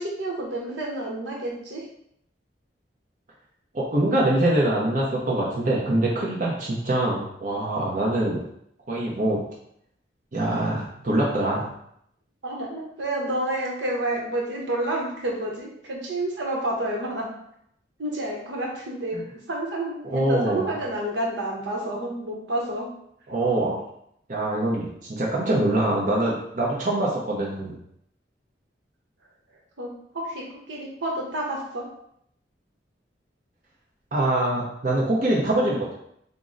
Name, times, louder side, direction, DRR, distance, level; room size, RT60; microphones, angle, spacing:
voice 1, 0.0-1.9 12.4-17.3 18.0-19.2 19.5-22.9 29.8-29.9 30.1-31.8, right 1 dB, 80° right, -2 dB, 0.9 m, -29 dB
voice 2, 3.7-8.4 8.9-9.4 10.3-11.7 20.0-20.7 23.3-23.8 24.3-27.8 34.1-35.9, right 1 dB, 45° right, -5 dB, 0.6 m, -24 dB
3.7 x 2.0 x 3.7 m, 0.73 s
head